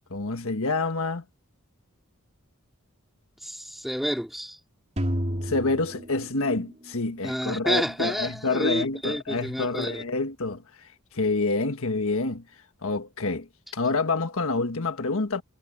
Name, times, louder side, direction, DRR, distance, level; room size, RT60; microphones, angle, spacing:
voice 1, 0.1-1.2 5.4-10.6 11.1-12.4 12.8-13.5 13.7-15.4, left 3 dB, 65° left, 1.6 m, -27 dB
voice 2, 3.4-4.6 7.2-10.0, equal, ahead, 2.5 m, -29 dB
sound 1, 5.0-7.1, equal, 30° right, 3.5 m, -31 dB
head